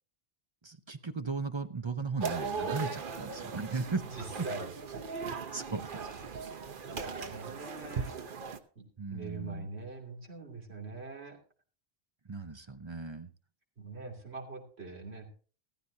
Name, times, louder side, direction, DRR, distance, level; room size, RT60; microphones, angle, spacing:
voice 1, 0.6-4.0 4.4-4.5 5.5-5.9 9.0-9.7 12.3-13.3, right 4 dB, 30° right, 9 dB, 0.7 m, -36 dB
sound 1, 2.2-8.6, right 5 dB, 55° right, 1.0 m, -38 dB
voice 2, 4.1-4.6 6.8-8.1 8.8-11.4 13.8-15.3, right 3 dB, 85° right, 0 dB, 3.2 m, -43 dB
15.5 x 14.0 x 2.8 m, 0.38 s
omnidirectional pair, 1.1 m